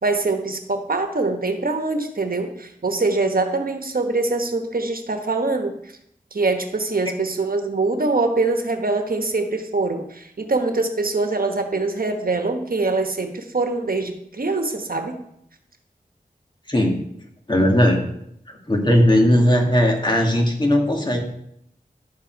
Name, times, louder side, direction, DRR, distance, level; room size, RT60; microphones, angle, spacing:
voice 1, 0.0-5.7 6.3-15.1, right 3 dB, 65° right, 6 dB, 1.2 m, -23 dB
voice 2, 16.7-17.0 17.5-18.0 18.5-21.2, equal, 30° left, 1 dB, 2.1 m, -18 dB
11.5 x 6.9 x 4.6 m, 0.75 s
wide cardioid pair, 50°, 16 cm